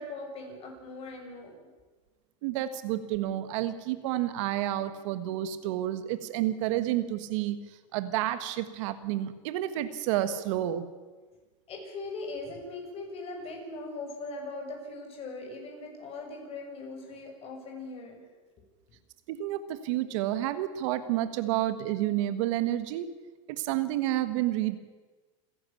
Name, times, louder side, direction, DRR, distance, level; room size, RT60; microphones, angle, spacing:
voice 1, 0.0-1.6 11.7-18.2, left 2 dB, 35° left, 2 dB, 6.8 m, -40 dB
voice 2, 2.4-7.6 7.9-10.9 19.3-23.1 23.5-24.8, right 13 dB, 70° right, 12 dB, 1.5 m, -30 dB
28.0 x 11.5 x 8.5 m, 1.3 s
supercardioid pair, 130°, 16 cm